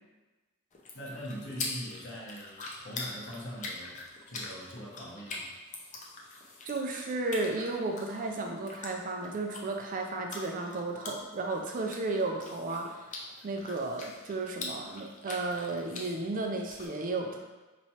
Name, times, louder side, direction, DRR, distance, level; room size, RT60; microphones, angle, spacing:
sound 1, 0.7-16.9, left 3 dB, 40° left, 0.6 m, -44 dB
voice 1, 0.9-4.0 4.3-5.4, equal, 60° left, -4 dB, 1.0 m, -42 dB
voice 2, 6.7-17.4, right 2 dB, 40° right, 2 dB, 0.4 m, -34 dB
4.5 x 3.0 x 2.8 m, 1.2 s
head